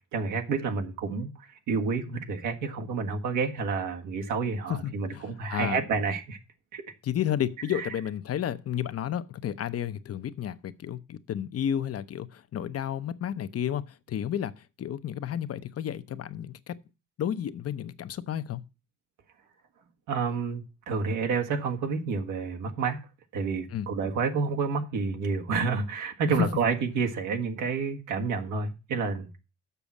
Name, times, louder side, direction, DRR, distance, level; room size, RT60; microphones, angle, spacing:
voice 1, 0.1-6.4 6.7-6.8 20.1-23.0 23.3-29.3, right 5 dB, 85° right, 1.6 m, -29 dB
voice 2, 4.7-5.8 7.0-16.7 17.2-18.6 23.7-23.9 26.4-26.5, left 10 dB, 50° left, 0.7 m, -32 dB
6.9 x 6.2 x 7.0 m
cardioid pair, 90°, 30 cm